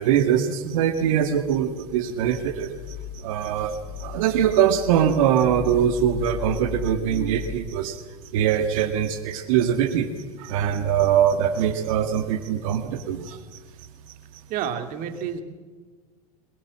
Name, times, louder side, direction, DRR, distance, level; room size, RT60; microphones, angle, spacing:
voice 1, 0.0-8.0 8.3-10.1 10.4-13.4, right 9 dB, 60° right, 6 dB, 1.9 m, -22 dB
sound 1, 1.2-7.5, left 8 dB, 70° left, 4.4 m, -38 dB
voice 2, 14.5-15.4, right 8 dB, 45° right, 6 dB, 2.6 m, -29 dB
22.5 x 21.0 x 7.5 m, 1.4 s
hypercardioid pair, 90°, 19 cm